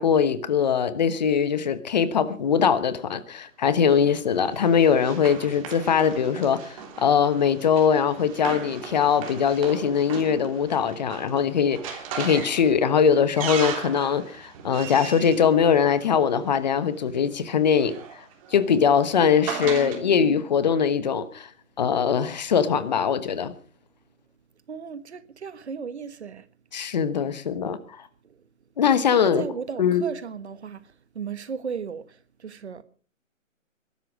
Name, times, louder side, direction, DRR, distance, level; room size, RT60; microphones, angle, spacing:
voice 1, 0.0-18.2 18.5-21.5 21.8-23.5 26.7-28.0 28.8-29.4 29.8-30.0, left 7 dB, 35° left, 1.2 m, -22 dB
Run, 3.9-16.5 17.5-20.0, right 7 dB, 25° right, 3.4 m, -38 dB
voice 2, 19.5-20.2 24.7-26.5 28.2-28.4 29.1-32.8, right 6 dB, 55° right, 1.6 m, -36 dB
22.0 x 12.5 x 4.9 m
hypercardioid pair, 155°, 40 cm